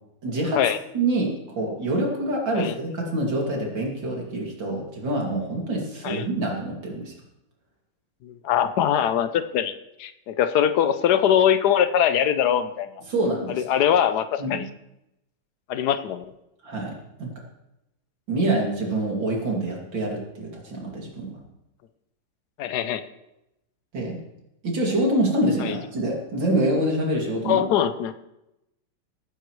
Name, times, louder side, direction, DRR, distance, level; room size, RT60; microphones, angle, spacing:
voice 1, 0.2-0.6 0.9-7.1 13.1-13.6 14.4-14.7 16.6-17.3 18.3-21.4 23.9-24.2 24.6-27.7, right 1 dB, 85° right, -1 dB, 3.2 m, -26 dB
voice 2, 8.2-9.7 10.0-12.9 13.5-14.7 15.7-16.2 22.6-23.0 25.6-25.8 27.4-28.1, left 9 dB, 70° left, 11 dB, 1.2 m, -22 dB
18.0 x 9.6 x 3.1 m, 0.89 s
omnidirectional pair, 2.0 m